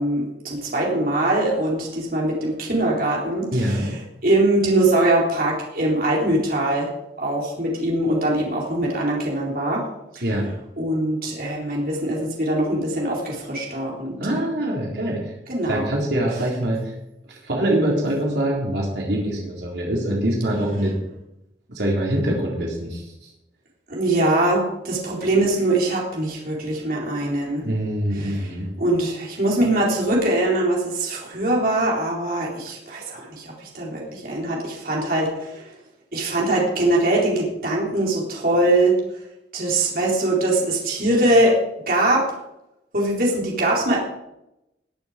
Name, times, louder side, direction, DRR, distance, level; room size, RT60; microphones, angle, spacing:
voice 1, 0.0-6.9 7.2-9.8 10.1-10.2 10.8-14.4 14.8-14.9 15.5-15.9 23.9-27.7 28.1-28.5 28.8-35.7 36.1-39.0 39.5-41.6 41.9-42.3 42.9-44.0, right 1 dB, 50° right, -3 dB, 3.9 m, -22 dB
voice 2, 3.5-3.9 10.2-10.5 14.2-15.3 15.7-16.9 17.3-20.9 21.7-23.3 27.6-28.7, right 1 dB, 75° right, -3 dB, 3.5 m, -24 dB
20.5 x 7.0 x 5.1 m, 0.86 s
head